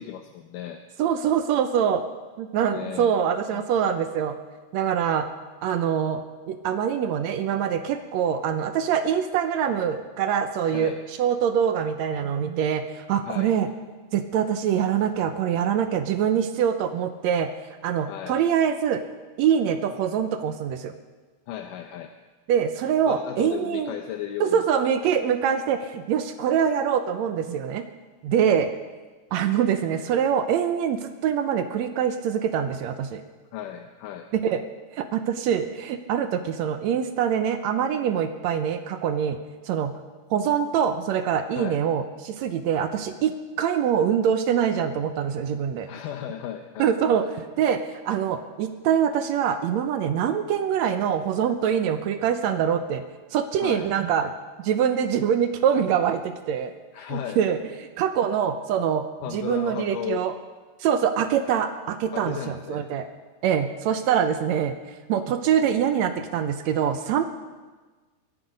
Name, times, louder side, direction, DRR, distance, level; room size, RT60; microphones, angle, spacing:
voice 1, 0.0-0.8 2.7-3.1 3.5-3.6 10.7-11.0 13.3-13.5 18.1-18.4 21.5-22.1 23.1-24.6 28.3-28.6 33.5-34.3 41.6-41.8 45.9-46.9 53.6-53.9 56.9-57.4 59.2-60.3 62.1-62.9, left 10 dB, 80° left, 5 dB, 2.3 m, -35 dB
voice 2, 1.0-2.0 2.4-4.3 4.7-5.3 5.6-13.7 14.1-17.5 17.8-19.0 19.4-20.9 22.5-23.9 24.4-27.8 28.2-28.7 29.3-33.2 34.3-34.6 34.9-39.4 39.6-39.9 40.3-43.3 43.6-45.9 46.8-53.0 53.3-54.3 54.6-56.7 57.1-60.3 60.8-63.0 63.4-64.7 65.1-67.2, right 8 dB, 75° right, 9 dB, 1.7 m, -24 dB
23.0 x 10.0 x 5.2 m, 1.3 s
omnidirectional pair, 3.8 m